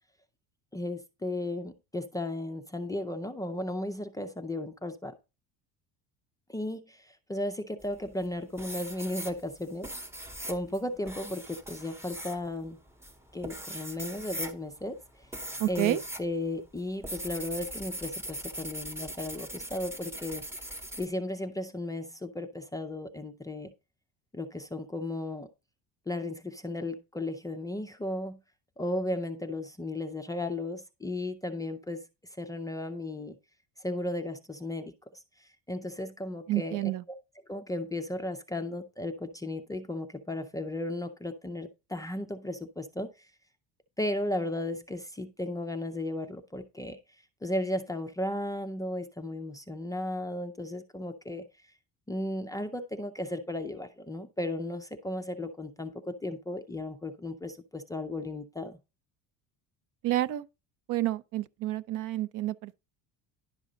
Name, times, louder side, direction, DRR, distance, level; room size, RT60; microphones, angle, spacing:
voice 1, 0.7-5.1 6.5-9.9 10.5-12.8 13.3-15.0 15.7-20.4 21.0-23.7 24.3-25.5 26.1-28.4 28.8-32.0 32.4-33.4 33.8-34.9 35.7-36.9 37.5-43.1 44.0-47.0 47.4-51.5 52.1-58.8, left 1 dB, 10° left, 0.4 m, -35 dB
sound 1, 7.8-8.3 8.6-16.3 16.5-21.1, right 1 dB, 5° right, 0.8 m, -40 dB
voice 2, 15.6-16.0 36.5-37.0 60.0-60.4 60.9-62.7, right 15 dB, 50° right, 0.6 m, -29 dB
11.0 x 6.1 x 3.9 m
cardioid pair, 170°, 40 cm